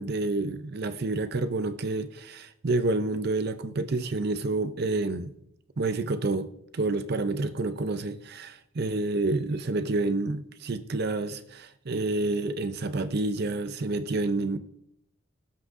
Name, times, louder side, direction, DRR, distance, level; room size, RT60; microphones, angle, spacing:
voice 1, 0.0-5.3 5.8-6.5 6.7-14.6, right 2 dB, 45° right, 0.5 m, -29 dB
18.0 x 6.1 x 2.6 m
head